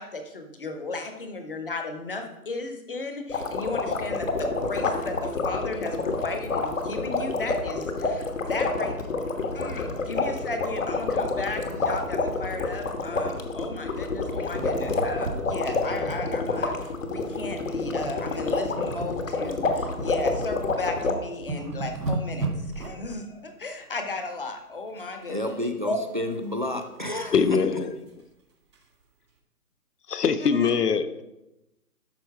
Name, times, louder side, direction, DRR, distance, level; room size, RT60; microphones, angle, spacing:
voice 1, 0.0-8.9 9.5-16.7 17.1-22.5 22.8-25.6 25.8-26.0 30.4-30.7, left 3 dB, 35° left, 6 dB, 0.9 m, -35 dB
sound 1, 3.3-21.1, left 3 dB, 55° left, 1.2 m, -28 dB
sound 2, 14.5-16.9 17.2-17.4 17.9-18.2 18.5-20.5 20.9-21.0 21.3-23.2 25.0-25.5 25.9-27.3 27.8-27.9 28.2-28.3 28.7-28.8, right 3 dB, 85° right, 2.1 m, -35 dB
voice 2, 25.3-27.6, left 1 dB, 30° right, 7 dB, 0.5 m, -30 dB
voice 3, 27.3-27.9 30.1-31.2, left 6 dB, 80° left, 12 dB, 0.9 m, -22 dB
12.0 x 4.4 x 4.6 m, 0.93 s
hypercardioid pair, 175°, 46 cm